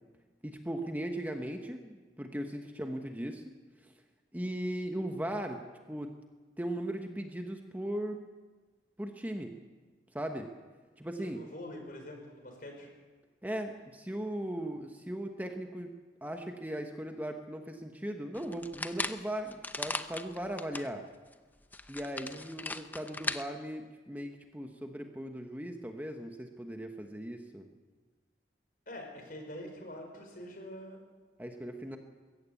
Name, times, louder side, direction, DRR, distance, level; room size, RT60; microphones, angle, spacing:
voice 1, 0.4-3.4 3.8-3.9 4.3-5.6 5.9-6.1 6.6-8.2 9.0-9.6 10.1-10.5 11.0-11.4 13.4-15.9 16.2-21.0 21.9-27.7 31.4-32.0, right 1 dB, 10° right, 4 dB, 1.1 m, -38 dB
voice 2, 11.3-12.9 22.3-22.4 28.9-31.0, left 1 dB, 50° left, 3 dB, 5.3 m, -45 dB
sound 1, 18.4-20.9 21.3-21.4 21.7-23.4, left 2 dB, 10° left, 0.7 m, -38 dB
21.5 x 16.0 x 8.4 m, 1.3 s
head